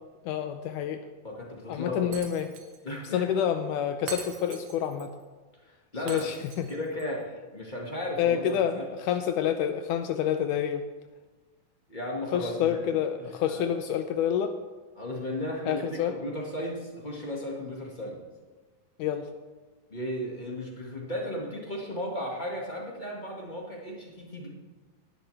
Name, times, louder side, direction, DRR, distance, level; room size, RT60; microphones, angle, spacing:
voice 1, 0.3-1.0 1.7-2.5 3.1-5.1 6.1-6.7 8.2-10.8 12.3-14.6 15.7-16.2 19.0-19.3, left 9 dB, 80° left, 8 dB, 2.0 m, -28 dB
voice 2, 1.2-2.1 2.8-3.2 5.9-6.3 6.7-8.9 11.9-12.8 13.2-13.7 15.0-18.2 19.9-24.5, left 1 dB, 25° left, -2 dB, 1.1 m, -35 dB
Shatter, 2.1-2.8 3.0-3.1 4.1-5.1 6.1-7.1, right 6 dB, 70° right, 2.7 m, -42 dB
18.5 x 11.5 x 3.4 m, 1.3 s
omnidirectional pair, 3.9 m